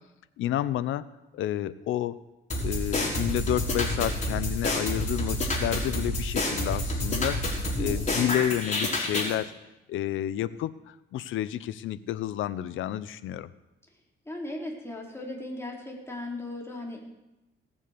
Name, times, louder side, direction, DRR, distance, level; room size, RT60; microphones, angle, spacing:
voice 1, 0.4-1.0 1.3-2.2 2.6-7.4 7.8-9.5 9.9-13.5, left 12 dB, 80° left, 15 dB, 0.7 m, -30 dB
sound 1, 2.5-9.3, left 1 dB, 35° left, 4.6 m, -29 dB
voice 2, 7.8-8.2 14.3-17.0, left 1 dB, 10° left, -2 dB, 4.2 m, -37 dB
18.5 x 7.3 x 6.8 m, 0.94 s
cardioid pair, 90°, 20 cm